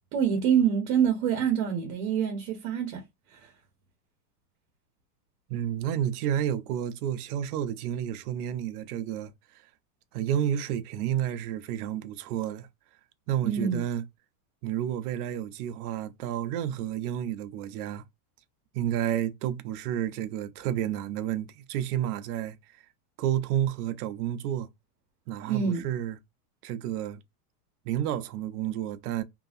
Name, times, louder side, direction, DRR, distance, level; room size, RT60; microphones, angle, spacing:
voice 1, 0.1-3.0 3.3-3.5 13.4-13.8 25.5-25.8, right 8 dB, 45° right, 1.1 m, -26 dB
voice 2, 5.5-9.3 10.1-12.7 13.3-14.0 14.6-18.0 18.7-22.6 23.2-24.7 25.3-26.2 26.6-27.2 27.8-29.2, right 11 dB, 70° right, 0.7 m, -30 dB
3.0 x 2.6 x 2.5 m
supercardioid pair, 150°, 47 cm